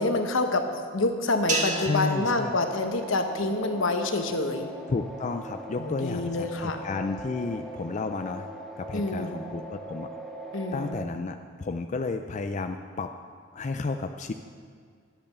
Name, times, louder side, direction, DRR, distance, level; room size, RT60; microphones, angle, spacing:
voice 1, 0.0-4.7 5.8-6.8 8.9-9.4 10.5-11.0, left 2 dB, 75° left, 6 dB, 1.1 m, -27 dB
sound 1, 1.5-3.9, right 2 dB, 40° right, 1.7 m, -33 dB
voice 2, 1.8-2.5 4.9-8.5 8.8-10.1 10.7-13.1 13.5-14.3, left 3 dB, 35° left, 6 dB, 0.4 m, -32 dB
sound 2, 2.6-11.0, right 1 dB, ahead, 1.0 m, -40 dB
11.0 x 8.6 x 6.8 m, 2.1 s
head